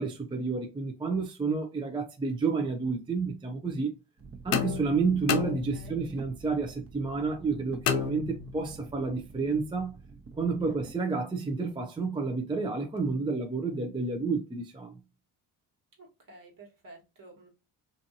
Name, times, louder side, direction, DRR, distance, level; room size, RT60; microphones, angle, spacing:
voice 1, 0.0-3.9 4.4-9.9 10.4-14.9, right 4 dB, 10° right, 0.4 m, -30 dB
sound 1, 4.2-10.9, right 4 dB, 30° right, 0.9 m, -47 dB
sound 2, 4.5-6.2 7.9-8.8, left 10 dB, 85° left, 0.5 m, -31 dB
voice 2, 5.7-6.0 10.5-10.8 16.0-17.5, right 2 dB, 45° right, 1.4 m, -51 dB
2.6 x 2.6 x 2.5 m
supercardioid pair, 60°, 44 cm